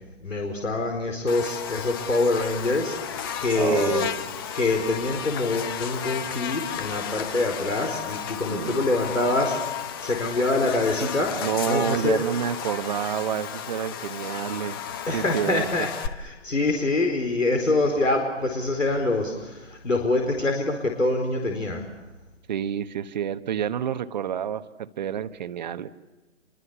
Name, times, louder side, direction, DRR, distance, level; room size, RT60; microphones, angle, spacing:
voice 1, 0.2-3.0 3.4-4.1 4.5-9.5 10.0-11.3 11.7-12.2 15.1-21.8, left 2 dB, 80° left, 3 dB, 4.6 m, -25 dB
Buzz, 1.3-16.1, left 8 dB, 20° left, 0.8 m, -33 dB
voice 2, 3.5-4.1 8.5-8.9 11.4-14.8 15.1-15.7 22.5-25.9, right 9 dB, 35° right, 11 dB, 1.1 m, -28 dB
27.0 x 23.5 x 7.1 m, 1.2 s
figure-of-eight pair, 135°, 38 cm